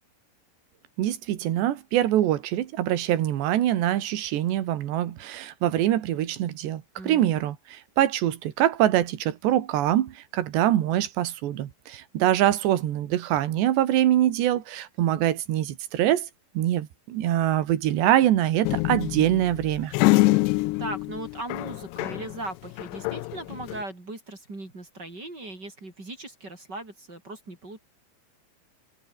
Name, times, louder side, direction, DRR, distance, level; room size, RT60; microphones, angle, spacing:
voice 1, 1.0-16.3 16.6-19.9, right 12 dB, 75° right, 3.9 m, -24 dB
voice 2, 7.0-7.3 20.8-27.8, right 2 dB, 20° right, 5.4 m, -38 dB
sound 1, 18.6-22.4 22.7-23.8, left 22 dB, 85° left, 2.6 m, -25 dB
omnidirectional pair, 5.2 m